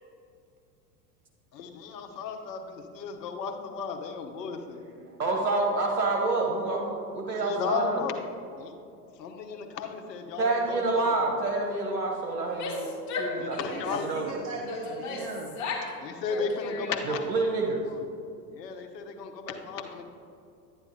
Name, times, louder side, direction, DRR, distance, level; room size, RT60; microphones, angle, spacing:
voice 1, 1.5-4.8 7.4-8.2 8.6-8.7 9.2-10.8 13.4-14.1 15.8-17.3 17.8-18.0 18.5-20.0, left 5 dB, 75° left, 5 dB, 1.1 m, -34 dB
voice 2, 5.0-8.0 10.4-12.9 13.2-13.6 14.0-14.4 17.1-17.8, right 3 dB, 90° right, 0 dB, 1.2 m, -28 dB
Female speech woman speaking / Yell, 12.4-14.0 14.7-15.9 16.2-17.2, left 3 dB, 35° left, 2.1 m, -35 dB
voice 3, 13.7-15.6, right 3 dB, 40° right, 0 dB, 1.0 m, -38 dB
11.5 x 9.6 x 2.8 m, 2.7 s
hypercardioid pair, 90°, 50 cm